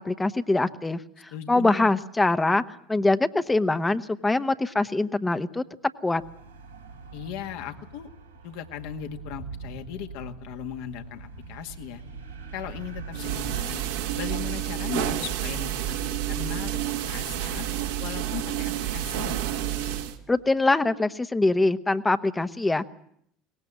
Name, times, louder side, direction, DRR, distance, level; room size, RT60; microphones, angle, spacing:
voice 1, 0.0-2.6 2.9-5.6 6.0-6.2 20.3-22.9, left 2 dB, 15° left, 11 dB, 1.1 m, -23 dB
voice 2, 1.3-1.9 7.1-8.1 8.4-12.0 12.5-13.8 14.2-17.7 18.0-19.4, left 10 dB, 60° left, 6 dB, 1.8 m, -38 dB
sound 1, 6.2-13.6, right 4 dB, 85° right, 3.2 m, -42 dB
sound 2, 13.1-20.2, right 11 dB, 70° right, 1.9 m, -29 dB
23.0 x 19.5 x 7.5 m, 0.69 s
figure-of-eight pair, 70°, 0 cm